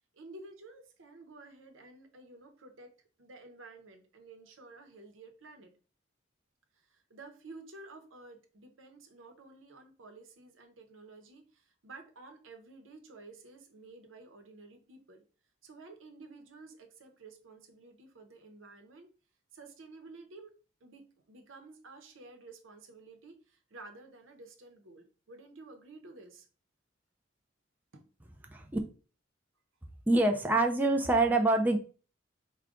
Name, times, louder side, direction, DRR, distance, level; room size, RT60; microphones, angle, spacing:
voice 1, 0.1-2.9 3.2-5.7 6.7-15.2 15.6-19.1 19.5-20.5 20.8-26.5 27.9-28.0, right 3 dB, 90° right, 5 dB, 0.8 m, -52 dB
voice 2, 30.1-31.8, right 2 dB, 10° right, 3 dB, 0.4 m, -25 dB
4.9 x 2.2 x 3.6 m, 0.37 s
head